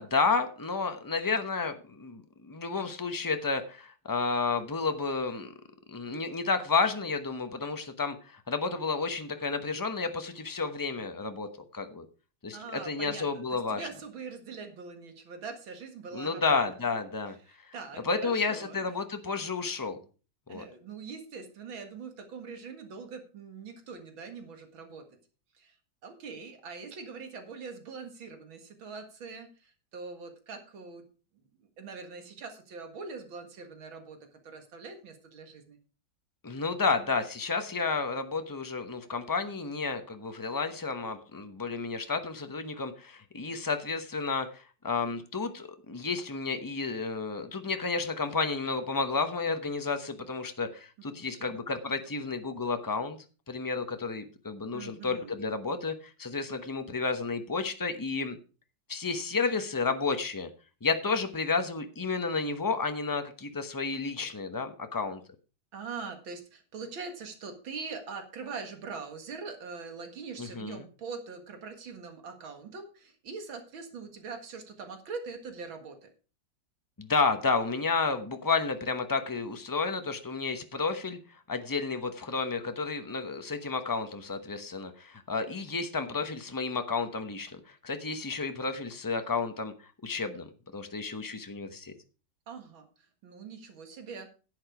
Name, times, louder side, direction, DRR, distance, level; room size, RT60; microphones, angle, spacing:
voice 1, 0.0-5.5 5.9-12.1 12.4-13.9 16.1-17.4 17.6-17.7 18.0-20.0 20.5-20.6 36.4-53.2 53.5-58.4 58.9-60.5 60.8-65.2 70.4-70.8 77.0-89.7 90.0-90.5 90.7-91.9, left 4 dB, 30° left, 7 dB, 0.4 m, -31 dB
voice 2, 12.5-16.6 17.5-18.8 20.5-25.0 25.6-25.8 26.0-31.0 31.6-35.8 51.1-51.6 54.7-55.3 65.7-76.1 92.5-92.9 93.2-94.3, right 5 dB, 75° right, 6 dB, 2.5 m, -43 dB
10.5 x 8.8 x 4.8 m, 0.35 s
omnidirectional pair, 2.2 m